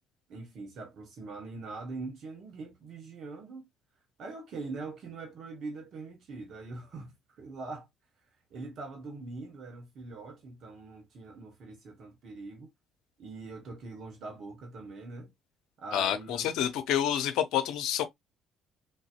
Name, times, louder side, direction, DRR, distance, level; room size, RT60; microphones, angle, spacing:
voice 1, 0.3-3.7 4.2-7.9 8.5-12.7 13.2-15.3 15.8-16.5, right 3 dB, 55° right, 1.0 m, -42 dB
voice 2, 15.9-18.0, left 10 dB, 65° left, 0.6 m, -28 dB
3.8 x 2.7 x 2.4 m
hypercardioid pair, 55°, 0 cm